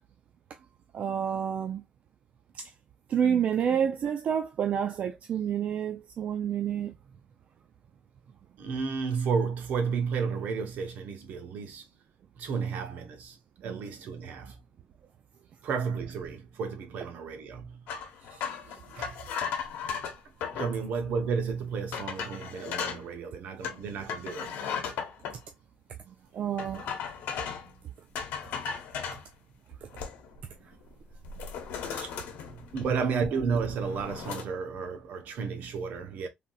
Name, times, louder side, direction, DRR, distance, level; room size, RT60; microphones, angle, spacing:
voice 1, 0.9-1.8 2.5-2.7 3.1-6.9 13.6-13.8 26.3-26.8, right 8 dB, 50° right, 0.4 m, -29 dB
voice 2, 8.6-11.8 12.4-14.6 15.6-17.9 18.3-19.2 20.5-24.5 31.9-32.1 32.7-36.3, right 5 dB, 70° right, 0.8 m, -32 dB
sound 1, 17.9-20.8 21.4-21.5 21.9-23.0 23.6-25.4 26.6-27.7 28.1-29.2 29.7-30.4 30.7-30.9 31.2-33.1 33.5-34.4, left 7 dB, 90° left, 0.8 m, -36 dB
3.4 x 2.3 x 2.5 m
cardioid pair, 140°, 3 cm